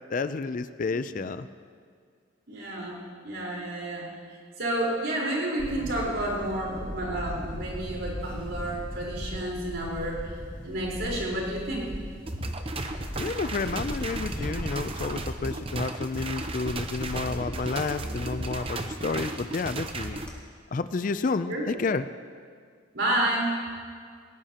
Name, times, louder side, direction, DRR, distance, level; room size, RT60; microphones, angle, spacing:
voice 1, 0.1-1.5 13.2-20.2 20.7-22.1, left 4 dB, 45° left, 12 dB, 0.4 m, -30 dB
voice 2, 2.5-4.1 4.6-10.2 10.6-11.9 21.5-21.8 22.9-23.6, right 1 dB, 85° right, -3 dB, 4.3 m, -30 dB
Camera, 5.6-20.4, equal, 5° left, 2.0 m, -39 dB
sound 1, 12.3-20.3, right 2 dB, 30° right, 0.8 m, -34 dB
19.0 x 18.5 x 2.9 m, 2.1 s
head